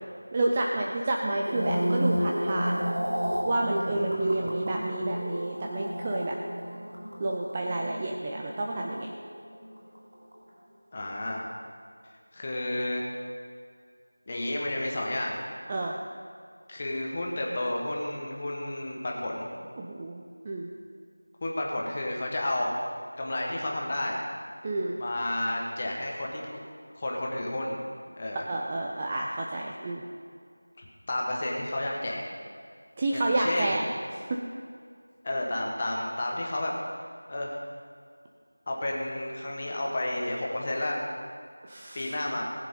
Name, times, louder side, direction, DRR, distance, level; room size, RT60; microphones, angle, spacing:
voice 1, 0.3-2.7 3.4-6.4 7.2-9.1 15.7-16.0 19.8-20.7 24.6-25.0 28.5-30.0 33.0-33.8 34.3-34.4 41.6-42.1, right 2 dB, 10° right, -1 dB, 0.4 m, -30 dB
sound 1, 1.3-9.7 9.9-10.3, equal, 50° right, 2.9 m, -32 dB
voice 2, 3.9-4.4 10.9-11.5 12.3-13.1 14.3-15.4 16.7-19.5 21.4-22.7 23.2-24.2 25.0-26.6 26.9-27.8 28.2-28.4 30.8-32.2 33.1-33.9 35.2-36.7 37.3-37.6 38.7-41.0 41.9-42.4, left 1 dB, 15° left, -2 dB, 1.1 m, -31 dB
18.5 x 7.5 x 5.4 m, 2.2 s
figure-of-eight pair, 180°, 0 cm